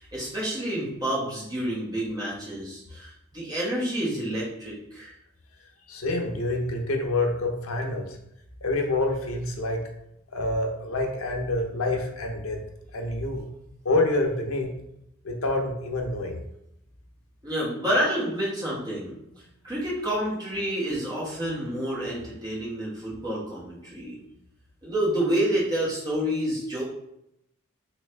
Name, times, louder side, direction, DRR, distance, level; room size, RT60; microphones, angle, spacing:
voice 1, 0.0-5.1 17.4-19.1 19.6-24.2 24.8-26.8, right 1 dB, 20° right, -7 dB, 1.1 m, -28 dB
voice 2, 5.9-8.2 8.6-9.8 10.3-12.6 12.9-13.5 13.8-14.7 15.2-16.4, left 2 dB, 80° left, 2 dB, 0.7 m, -27 dB
3.2 x 3.0 x 3.2 m, 0.80 s
head